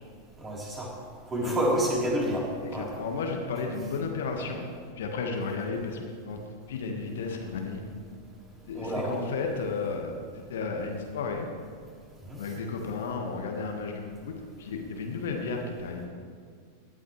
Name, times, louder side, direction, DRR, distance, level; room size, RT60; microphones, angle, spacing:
voice 1, 0.4-0.9 1.3-2.5 2.7-2.9 8.7-9.2 12.3-12.4, equal, 20° right, -4 dB, 3.8 m, -28 dB
voice 2, 2.7-4.7 5.0-6.4 6.7-7.8 8.7-11.5 12.4-16.1, left 4 dB, 60° left, 2 dB, 1.6 m, -33 dB
18.5 x 11.5 x 3.3 m, 2.1 s
figure-of-eight pair, 90°, 0 cm